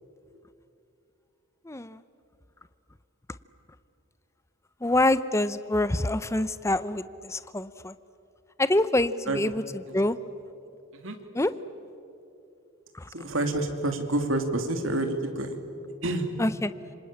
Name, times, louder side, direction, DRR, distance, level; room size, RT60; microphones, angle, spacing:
voice 1, 1.7-2.0 4.8-7.9 8.6-9.6 9.9-10.2 11.3-11.5 12.9-13.0 16.4-16.7, left 1 dB, 15° left, 14 dB, 0.6 m, -26 dB
voice 2, 13.1-15.6 16.0-16.3, right 2 dB, 70° right, 6 dB, 2.7 m, -28 dB
27.0 x 25.5 x 8.8 m, 2.7 s
head